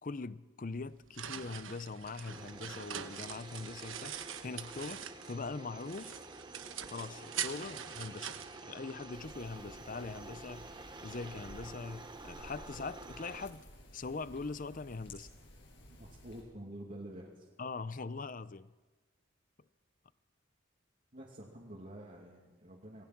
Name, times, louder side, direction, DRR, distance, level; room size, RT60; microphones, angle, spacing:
voice 1, 0.0-6.1 6.9-10.8 11.0-13.6 13.9-15.3 17.6-18.7, left 3 dB, 45° left, 0.6 m, -42 dB
sound 1, 0.7-5.5 5.8-9.3, right 9 dB, 85° right, 1.3 m, -44 dB
sound 2, 2.3-13.5, right 2 dB, 25° right, 1.4 m, -50 dB
sound 3, 9.1-16.4, left 1 dB, 60° left, 6.8 m, -55 dB
voice 2, 16.0-17.5 21.1-23.0, right 1 dB, 45° right, 2.6 m, -48 dB
27.5 x 20.0 x 6.0 m
head